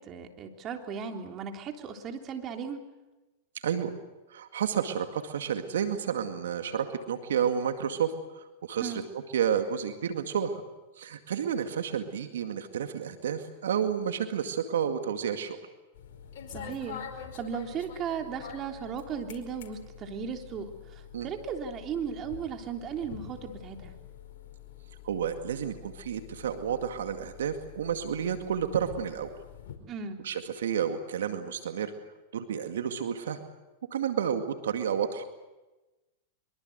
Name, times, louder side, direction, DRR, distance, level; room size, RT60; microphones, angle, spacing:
voice 1, 0.0-2.8 8.8-9.0 16.5-23.9 29.9-30.2, right 7 dB, 35° right, 4 dB, 3.4 m, -36 dB
voice 2, 4.3-10.6 11.0-15.6 21.1-21.3 25.0-29.3 30.2-31.9 32.3-33.4 33.9-35.3, right 8 dB, 80° right, 7 dB, 2.1 m, -31 dB
sound 1, 15.9-29.8, left 8 dB, 65° left, 4.9 m, -46 dB
24.5 x 23.5 x 8.1 m, 1.1 s
hypercardioid pair, 115°, 0 cm